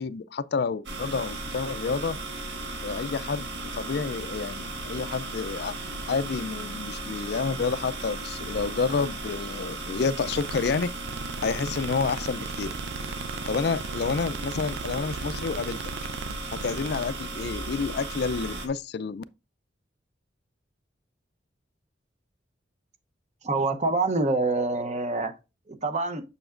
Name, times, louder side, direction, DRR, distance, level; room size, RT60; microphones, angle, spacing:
voice 1, 0.0-2.2 2.8-5.7 6.1-10.9 11.4-12.7 13.4-15.8 16.6-19.2, left 5 dB, 55° left, 0.4 m, -29 dB
sound 1, 0.9-18.7, right 2 dB, 60° right, 1.6 m, -36 dB
sound 2, 10.3-17.1, right 5 dB, 80° right, 0.4 m, -39 dB
voice 2, 23.4-25.3 25.7-26.2, right 3 dB, 35° right, 0.9 m, -26 dB
7.0 x 6.8 x 2.5 m
head